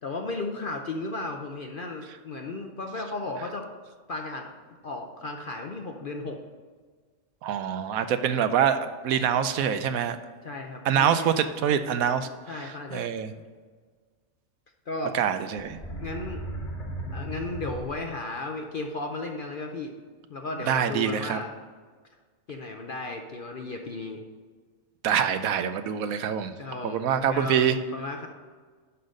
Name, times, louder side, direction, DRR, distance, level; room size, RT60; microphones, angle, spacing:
voice 1, 0.0-3.6 4.1-4.5 4.8-6.4 10.4-11.3 12.5-13.0 14.9-15.2 16.0-16.4 17.1-19.9 20.3-21.5 22.5-24.2 26.6-27.6 27.9-28.3, left 2 dB, 50° left, 3 dB, 0.6 m, -35 dB
voice 2, 7.4-10.2 10.8-12.3 12.5-13.3 15.1-15.8 20.7-21.4 25.0-26.5 26.8-27.8, right 8 dB, 75° right, 10 dB, 1.0 m, -25 dB
sound 1, 15.6-18.4, right 1 dB, 35° left, 1.5 m, -36 dB
11.5 x 3.9 x 6.4 m, 1.5 s
omnidirectional pair, 1.5 m